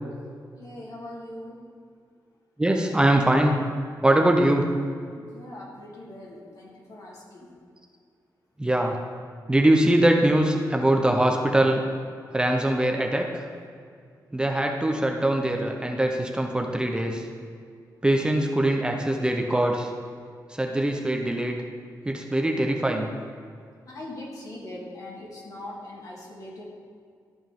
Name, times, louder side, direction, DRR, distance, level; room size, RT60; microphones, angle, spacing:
voice 1, 0.6-1.6 5.2-7.5 23.9-26.6, left 1 dB, 55° left, -3 dB, 2.0 m, -41 dB
voice 2, 2.6-3.6 4.0-4.7 8.6-9.0 9.5-11.8 12.3-13.4 14.3-17.2 18.0-19.9 20.5-21.6 22.1-23.1, right 1 dB, 10° right, 2 dB, 0.7 m, -22 dB
12.5 x 5.3 x 3.7 m, 2.2 s
cardioid pair, 105°, 7 cm